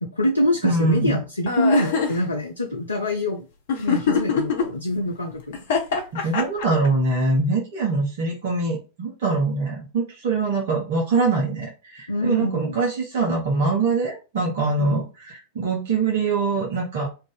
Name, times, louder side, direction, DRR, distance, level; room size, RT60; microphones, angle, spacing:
voice 1, 0.0-3.5 3.8-5.6 6.2-6.3 12.1-12.8 14.8-15.0, left 1 dB, 80° left, 2 dB, 0.4 m, -25 dB
voice 2, 0.6-1.2 6.2-17.1, right 3 dB, 55° right, -1 dB, 0.9 m, -23 dB
sound 1, 1.5-2.2 3.7-4.6 5.5-6.9, left 6 dB, 55° left, 0.8 m, -22 dB
2.6 x 2.5 x 3.9 m, 0.31 s
figure-of-eight pair, 90°, 0 cm